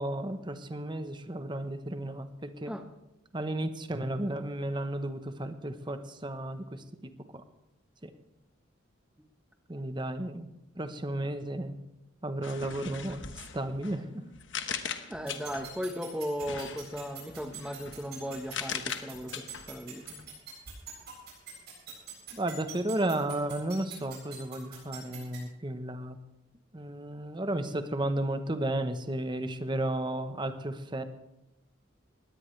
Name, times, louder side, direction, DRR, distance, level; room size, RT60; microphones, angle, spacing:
voice 1, 0.0-2.8 3.3-7.4 8.0-8.1 9.7-10.5 10.7-11.8 12.2-13.2 13.5-14.2 22.3-26.2 26.7-31.0, right 1 dB, 25° right, 9 dB, 1.0 m, -33 dB
sound 1, 12.4-15.8 16.4-20.3, left 7 dB, 65° left, 1.2 m, -40 dB
voice 2, 15.1-20.2, equal, 5° right, 5 dB, 1.2 m, -37 dB
sound 2, 15.3-25.4, right 11 dB, 55° right, 7.9 m, -44 dB
20.5 x 17.0 x 3.3 m, 0.92 s
head